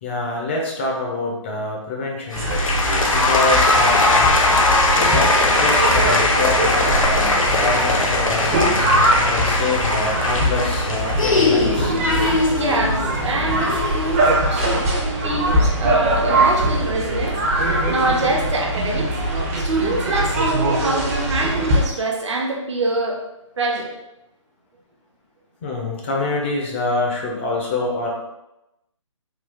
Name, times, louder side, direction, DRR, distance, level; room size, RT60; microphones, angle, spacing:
voice 1, 0.0-2.5 3.1-4.4 5.1-8.6 9.2-12.0 25.6-28.1, left 2 dB, 20° left, -1 dB, 0.5 m, -26 dB
sound 1, 2.3-14.2, left 2 dB, 85° left, 0.7 m, -20 dB
sound 2, 2.3-21.8, right 1 dB, 25° right, 0.6 m, -22 dB
voice 2, 12.6-14.8 15.2-17.4 17.9-19.1 19.6-23.2 23.6-23.9, right 2 dB, 60° right, -1 dB, 0.9 m, -25 dB
3.7 x 2.3 x 3.3 m, 0.92 s
figure-of-eight pair, 145°, 17 cm